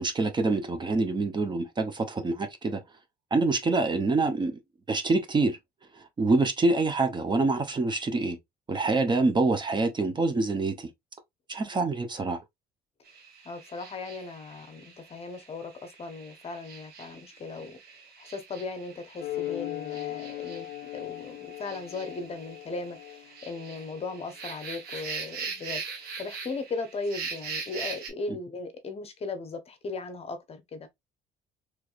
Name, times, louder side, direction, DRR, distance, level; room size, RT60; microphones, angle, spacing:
voice 1, 0.0-2.8 3.3-4.6 4.9-5.6 6.0-8.4 8.7-10.9 11.5-12.4 28.3-28.4, right 3 dB, 25° right, 0.8 m, -26 dB
sound 1, 13.1-28.1, right 5 dB, 70° right, 1.4 m, -42 dB
voice 2, 13.4-17.8 18.2-20.7 20.9-30.9, left 3 dB, 35° left, 0.8 m, -37 dB
sound 2, 19.2-24.1, left 15 dB, 80° left, 0.4 m, -38 dB
3.3 x 3.1 x 2.4 m
cardioid pair, 110°, 17 cm